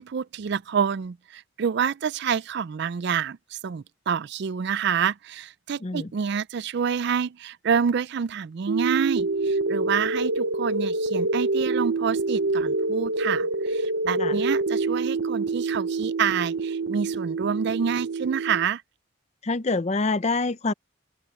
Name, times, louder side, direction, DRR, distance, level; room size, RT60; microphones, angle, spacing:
voice 1, 0.0-18.8, right 7 dB, 55° right, 0.4 m, -27 dB
sound 1, 8.7-18.7, right 3 dB, 70° right, 0.9 m, -26 dB
voice 2, 19.4-20.7, left 3 dB, 30° left, 0.6 m, -26 dB
head